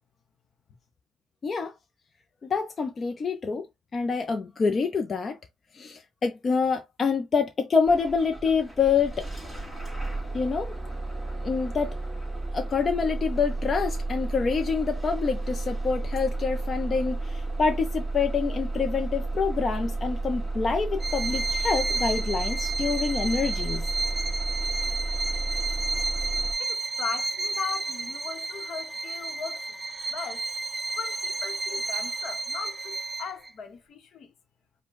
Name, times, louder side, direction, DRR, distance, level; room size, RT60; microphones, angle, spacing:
voice 1, 1.4-1.7 2.4-3.7 3.9-5.4 5.7-9.3 10.3-10.7 11.4-12.0 12.5-23.8, left 5 dB, 45° left, 0.6 m, -26 dB
Bus / Engine starting, 7.9-26.5, right 2 dB, ahead, 2.1 m, -32 dB
Bowed string instrument, 21.0-33.5, right 3 dB, 25° right, 0.5 m, -32 dB
voice 2, 26.6-29.8 30.1-30.5 30.9-34.3, left 5 dB, 65° left, 1.0 m, -38 dB
5.0 x 2.3 x 3.8 m
cardioid pair, 90°, 0 cm